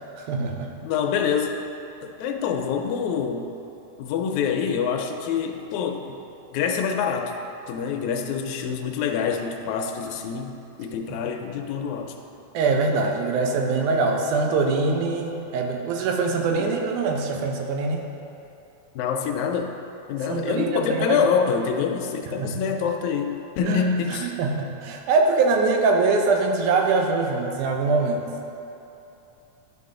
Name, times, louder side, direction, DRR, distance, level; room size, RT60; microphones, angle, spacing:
voice 1, 0.2-0.7 11.1-11.2 12.5-18.0 20.3-21.2 22.4-22.7 23.7-23.8 24.1-28.2, right 4 dB, 85° right, 2 dB, 2.2 m, -23 dB
voice 2, 0.8-1.5 2.0-3.5 4.0-6.2 6.5-7.3 7.7-12.1 16.6-16.7 19.0-19.7 20.1-24.4, left 6 dB, 80° left, 4 dB, 1.9 m, -26 dB
11.5 x 4.0 x 3.7 m, 2.9 s
omnidirectional pair, 3.4 m